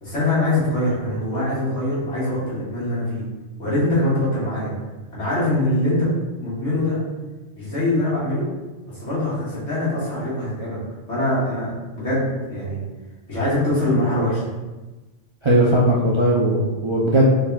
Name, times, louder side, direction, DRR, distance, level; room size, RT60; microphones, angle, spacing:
voice 1, 0.0-3.2 3.6-4.7 5.1-6.1 6.4-7.0 7.6-8.5 8.9-10.8 11.1-12.8 13.3-14.5, left 1 dB, 75° left, -10 dB, 2.1 m, -23 dB
voice 2, 15.4-17.2, right 1 dB, 40° right, -5 dB, 0.4 m, -18 dB
4.6 x 3.7 x 2.3 m, 1.2 s
omnidirectional pair, 1.2 m